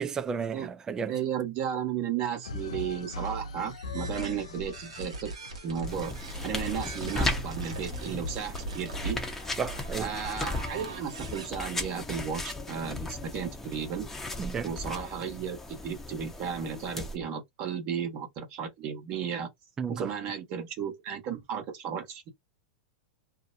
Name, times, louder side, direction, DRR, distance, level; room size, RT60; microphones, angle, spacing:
voice 1, 0.0-1.1 9.6-10.1 14.4-14.7 19.8-20.1, right 6 dB, 20° right, 0.3 m, -32 dB
voice 2, 1.1-5.3 5.6-6.1 6.4-9.2 10.0-14.1 14.6-19.5 20.0-22.3, right 8 dB, 45° right, 1.2 m, -34 dB
sound 1, 2.4-7.3, left 2 dB, 80° left, 0.4 m, -41 dB
sound 2, 3.7-11.5, right 2 dB, 85° right, 1.0 m, -40 dB
sound 3, 5.9-17.2, left 2 dB, 10° left, 0.7 m, -36 dB
2.6 x 2.1 x 2.6 m
hypercardioid pair, 110°, 3 cm